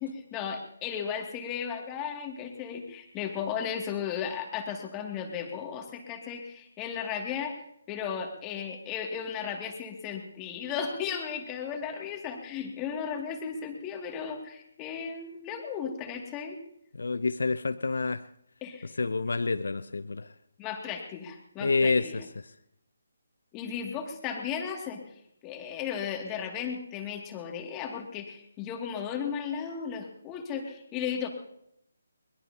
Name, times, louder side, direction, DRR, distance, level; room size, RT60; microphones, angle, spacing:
voice 1, 0.0-7.5 7.9-16.6 18.6-18.9 20.6-22.2 23.5-25.0 25.4-31.3, left 7 dB, 20° left, 2 dB, 2.4 m, -35 dB
voice 2, 17.0-18.2 19.0-20.3 21.6-22.2, left 3 dB, 70° left, 14 dB, 0.6 m, -28 dB
22.5 x 21.0 x 2.9 m, 0.76 s
figure-of-eight pair, 150°, 0 cm